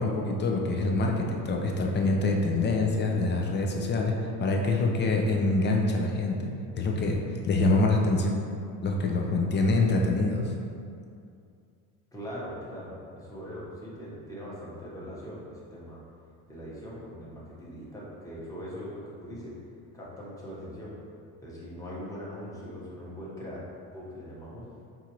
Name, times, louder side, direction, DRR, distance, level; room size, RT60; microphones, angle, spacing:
voice 1, 0.0-4.1 4.4-6.5 6.8-8.4 8.8-10.4, left 2 dB, 30° left, 1 dB, 0.3 m, -25 dB
voice 2, 12.1-16.0 16.5-19.6 19.9-20.9 21.4-23.6 23.9-24.6, equal, 10° left, -7 dB, 1.0 m, -41 dB
4.5 x 2.5 x 2.9 m, 2.4 s
supercardioid pair, 100°, 43 cm